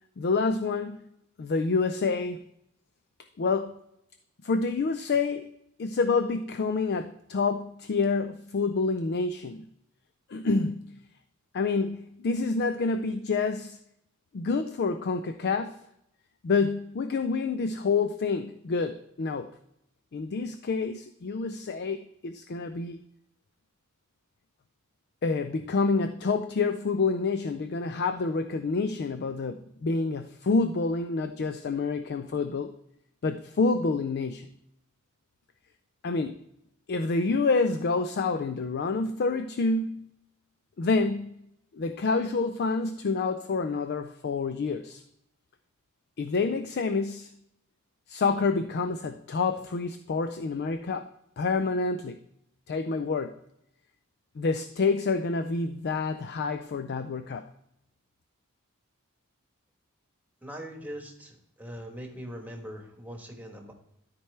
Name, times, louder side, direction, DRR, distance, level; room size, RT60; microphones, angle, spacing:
voice 1, 0.2-1.0 1.4-2.4 3.4-3.8 4.4-5.5 5.8-9.7 10.3-11.0 11.5-13.8 14.3-15.8 16.4-19.5 20.1-23.0 25.2-32.7 33.2-34.5 36.0-36.4 36.9-40.1 40.8-41.4 41.7-45.0 46.2-47.3 48.1-51.1 51.4-52.2 52.7-53.4 54.4-57.5, left 4 dB, 50° left, 10 dB, 0.4 m, -28 dB
voice 2, 60.4-63.7, equal, 10° right, 1 dB, 1.3 m, -41 dB
13.0 x 4.5 x 3.3 m, 0.78 s
head